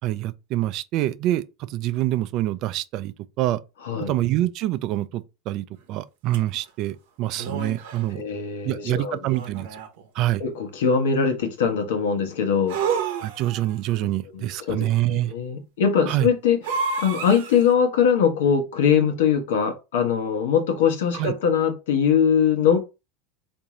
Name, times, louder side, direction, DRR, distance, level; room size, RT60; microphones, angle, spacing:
voice 1, 0.0-3.6 4.0-8.3 8.6-9.7 10.1-10.4 13.2-15.3 16.1-16.3 21.1-21.3, right 15 dB, 50° right, 0.3 m, -26 dB
sound 1, 6.3-6.4 7.4-8.1 9.3-10.0 12.7-13.7 16.6-17.7, right 5 dB, 75° right, 0.7 m, -29 dB
voice 2, 8.1-9.2 10.4-12.8 14.3-16.6 17.0-22.8, left 7 dB, 85° left, 0.9 m, -22 dB
3.7 x 2.6 x 3.0 m
supercardioid pair, 115°, 0 cm